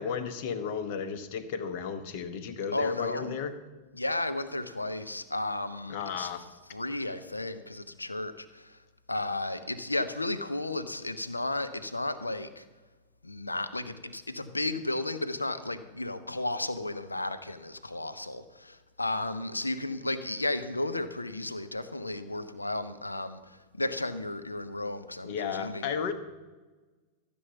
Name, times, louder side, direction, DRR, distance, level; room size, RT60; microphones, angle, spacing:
voice 1, 0.0-3.5 5.9-6.4 25.2-26.1, left 7 dB, 50° left, 11 dB, 1.1 m, -33 dB
voice 2, 2.7-3.3 3.9-6.3 6.7-8.8 9.1-12.7 13.2-26.1, left 2 dB, 85° left, 12 dB, 0.6 m, -33 dB
14.0 x 7.0 x 7.1 m, 1.3 s
figure-of-eight pair, 90°, 0 cm